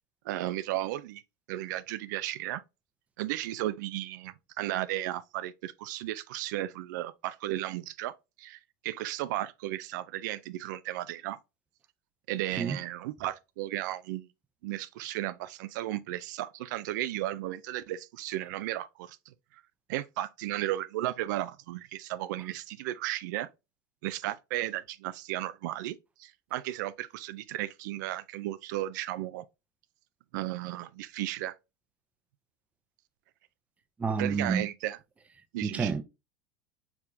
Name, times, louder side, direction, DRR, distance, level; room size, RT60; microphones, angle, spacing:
voice 1, 0.2-1.2 1.5-2.6 3.2-8.1 8.4-11.4 12.3-14.3 14.6-19.6 19.9-23.5 24.0-29.4 30.3-31.5 34.2-35.0 35.5-35.9, right 15 dB, 80° right, 0.4 m, -34 dB
voice 2, 34.0-34.7 35.6-36.0, right 5 dB, 15° right, 0.6 m, -29 dB
4.6 x 3.6 x 2.6 m
supercardioid pair, 140°, 10 cm